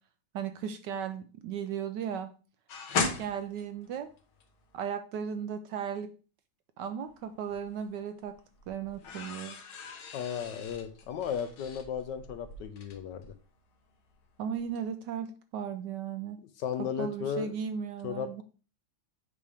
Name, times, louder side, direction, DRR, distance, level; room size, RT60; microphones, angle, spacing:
voice 1, 0.3-2.3 2.9-4.1 4.7-6.1 6.8-8.4 8.7-9.6 14.4-16.4 16.8-18.4, right 8 dB, 75° right, 10 dB, 1.0 m, -36 dB
sound 1, 2.7-4.8 7.0-7.8 8.2-14.2 14.5-14.8, left 4 dB, 90° left, 2.0 m, -38 dB
voice 2, 10.1-13.3 16.6-17.5 18.0-18.4, left 8 dB, 70° left, 10 dB, 1.2 m, -35 dB
8.3 x 5.2 x 3.4 m, 0.36 s
omnidirectional pair, 2.2 m